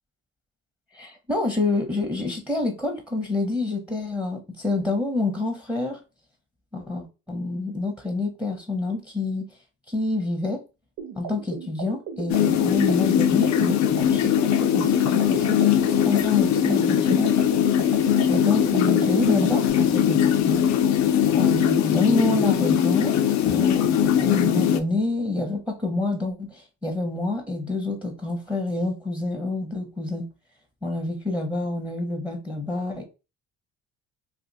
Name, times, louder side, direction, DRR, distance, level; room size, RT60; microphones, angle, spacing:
voice 1, 0.9-6.0 6.7-9.5 9.9-10.6 11.1-17.3 18.3-20.7 21.4-23.1 23.4-30.3 30.8-33.0, left 2 dB, 5° right, 0.9 m, -27 dB
sound 1, 11.0-19.7, right 6 dB, 80° right, 0.9 m, -35 dB
sound 2, 12.3-24.8, left 9 dB, 65° left, 0.5 m, -21 dB
2.5 x 2.5 x 4.0 m
cardioid pair, 90°, 30 cm